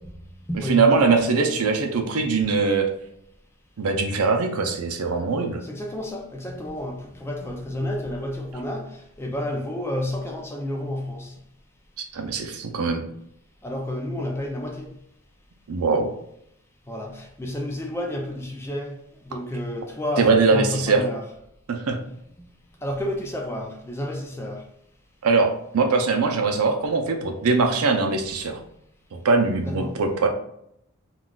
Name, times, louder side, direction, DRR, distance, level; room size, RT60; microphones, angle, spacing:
voice 1, 0.1-1.0 5.6-11.4 13.6-15.0 16.9-21.2 22.4-22.5 22.8-24.7 29.6-30.0, left 1 dB, 10° left, 0.4 m, -31 dB
voice 2, 0.7-2.9 3.8-5.6 12.1-13.1 15.7-16.1 20.2-21.0 21.7-22.0 25.2-28.6 29.1-30.3, right 4 dB, 80° right, 0.5 m, -21 dB
3.7 x 2.3 x 2.3 m
head